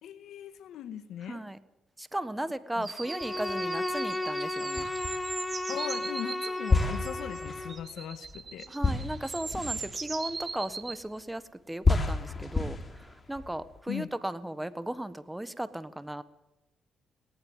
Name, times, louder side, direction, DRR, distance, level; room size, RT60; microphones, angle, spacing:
voice 1, 0.0-1.4 2.8-2.9 5.7-8.7 13.9-14.1, left 10 dB, 75° left, 10 dB, 1.8 m, -39 dB
voice 2, 1.2-1.6 2.0-4.9 8.7-16.2, right 1 dB, 10° right, 14 dB, 1.4 m, -36 dB
sound 1, 2.8-11.0, right 4 dB, 35° right, 2.2 m, -40 dB
Bowed string instrument, 3.0-7.8, left 2 dB, 10° left, 1.5 m, -34 dB
sound 2, 3.2-3.9 4.8-5.7 6.7-11.2 11.8-13.8, left 3 dB, 30° left, 3.8 m, -31 dB
19.0 x 19.0 x 7.4 m, 0.96 s
cardioid pair, 90°, 0 cm